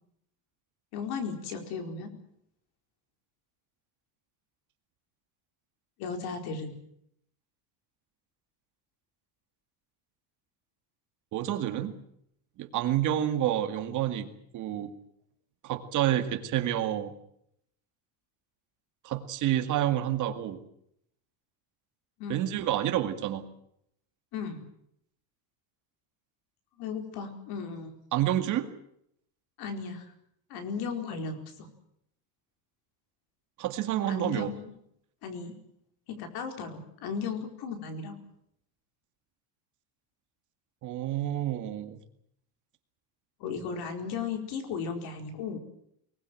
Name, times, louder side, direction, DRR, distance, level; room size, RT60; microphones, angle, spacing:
voice 1, 0.9-2.1 6.0-6.8 22.2-22.4 24.3-24.7 26.8-27.9 29.6-30.1 30.5-31.7 34.1-34.7 35.2-35.6 36.1-38.2 43.4-45.6, left 5 dB, 60° left, 6 dB, 4.6 m, -35 dB
voice 2, 11.3-11.9 12.6-14.3 14.5-14.9 15.6-17.1 19.0-20.6 22.3-23.5 28.1-28.7 33.6-34.5 40.8-42.0, right 12 dB, 45° right, 8 dB, 2.2 m, -29 dB
24.0 x 20.0 x 7.7 m, 0.73 s
cardioid pair, 170°, 43 cm